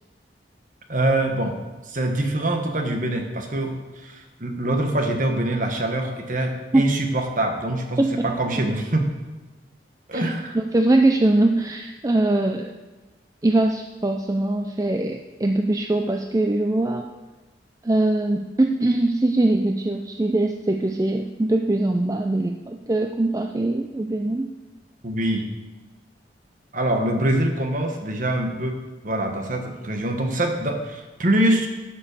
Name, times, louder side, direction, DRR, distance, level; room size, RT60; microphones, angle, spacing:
voice 1, 0.9-1.6 1.9-9.0 10.1-10.6 25.0-25.5 26.7-28.8 29.0-31.7, right 1 dB, 45° right, 4 dB, 1.3 m, -24 dB
voice 2, 8.0-8.3 10.1-10.2 10.5-12.8 13.4-17.1 17.8-24.5, right 2 dB, 20° right, 4 dB, 0.4 m, -22 dB
11.5 x 5.3 x 6.7 m, 1.2 s
head